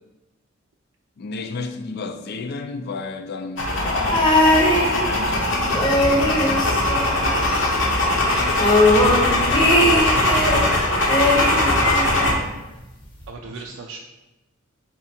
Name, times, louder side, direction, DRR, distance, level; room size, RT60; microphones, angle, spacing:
voice 1, 1.2-10.9 11.5-12.7 13.4-13.8, left 4 dB, 55° left, 0.4 m, -35 dB
sound 1, 3.6-12.3, left 1 dB, 75° left, 0.9 m, -21 dB
sound 2, 4.1-5.4 5.7-7.6 7.9-8.0 8.3-10.7 11.1-12.3 13.2-13.3, left 1 dB, 25° left, 0.7 m, -20 dB
voice 2, 13.3-14.0, right 4 dB, 75° right, 0.4 m, -37 dB
4.3 x 2.8 x 4.2 m
head